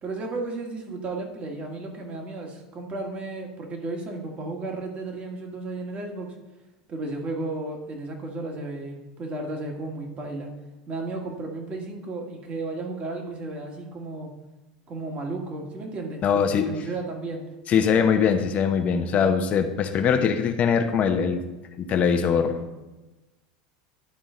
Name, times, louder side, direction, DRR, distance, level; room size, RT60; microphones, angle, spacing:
voice 1, 0.0-6.3 6.9-10.5 10.9-14.3 14.9-17.4, right 2 dB, 35° right, 1 dB, 1.8 m, -33 dB
voice 2, 16.2-16.7 17.7-21.4 21.8-22.6, left 7 dB, 40° left, 6 dB, 0.9 m, -22 dB
11.5 x 3.9 x 3.8 m, 1.1 s
hypercardioid pair, 95°, 4 cm